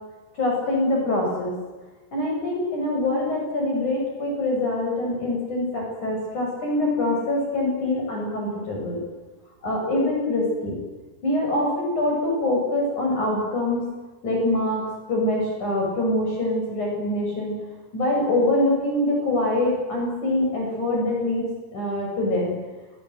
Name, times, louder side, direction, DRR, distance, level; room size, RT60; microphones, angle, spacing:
voice 1, 0.4-1.5 2.1-9.0 9.6-10.8 11.2-13.9 14.2-17.5 17.9-21.5 21.7-22.5, left 1 dB, 35° left, -1 dB, 8.8 m, -24 dB
27.5 x 24.0 x 8.1 m, 1.2 s
omnidirectional pair, 5.9 m